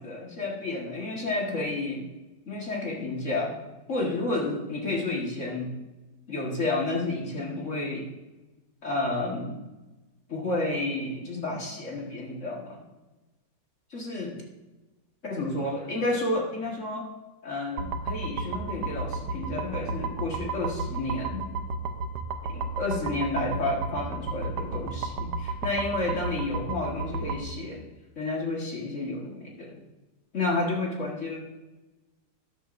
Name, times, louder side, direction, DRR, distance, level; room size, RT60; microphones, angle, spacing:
voice 1, 0.0-2.1 2.5-3.6 3.9-5.7 6.3-8.0 8.8-9.6 10.3-12.8 13.9-14.3 15.2-17.1 17.4-21.5 22.4-27.8 28.2-29.8 30.3-31.4, left 2 dB, 40° left, -2 dB, 1.9 m, -31 dB
sound 1, 17.8-27.4, right 3 dB, 65° right, 1.3 m, -33 dB
13.0 x 10.0 x 2.6 m, 1.1 s
omnidirectional pair, 2.0 m